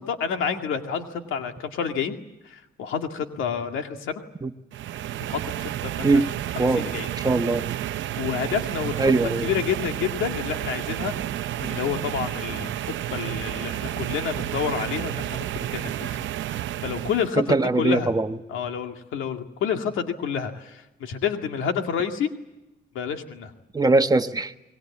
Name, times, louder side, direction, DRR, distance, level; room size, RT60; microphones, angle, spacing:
voice 1, 0.1-2.2 2.4-4.2 5.2-6.2 6.6-7.1 8.2-9.1 9.4-11.1 11.6-15.5 15.7-16.2 16.5-18.1 18.5-22.3 22.9-23.5, left 7 dB, 85° left, 5 dB, 2.1 m, -29 dB
sound 1, 4.7-17.3, right 12 dB, 75° right, 0.8 m, -31 dB
voice 2, 7.1-7.6 9.0-9.5 17.4-18.4 23.7-24.5, right 3 dB, 20° right, 7 dB, 1.3 m, -21 dB
25.5 x 21.0 x 8.5 m, 1.0 s
cardioid pair, 90°, 20 cm